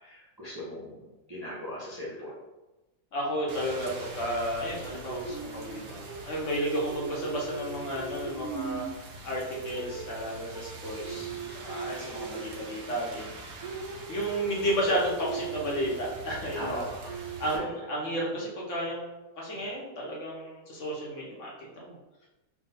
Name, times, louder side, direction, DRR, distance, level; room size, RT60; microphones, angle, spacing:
voice 1, 0.0-2.3 11.1-11.4 12.4-12.5 16.5-17.1 17.5-17.6, equal, 30° right, -7 dB, 0.4 m, -39 dB
voice 2, 3.1-8.8 9.2-13.4 14.1-16.8 17.4-21.5 21.8-22.0, equal, 55° left, -4 dB, 1.0 m, -32 dB
Rain, 3.5-17.6, right 4 dB, 70° right, 1.1 m, -40 dB
3.6 x 2.2 x 4.0 m, 1.0 s
omnidirectional pair, 1.7 m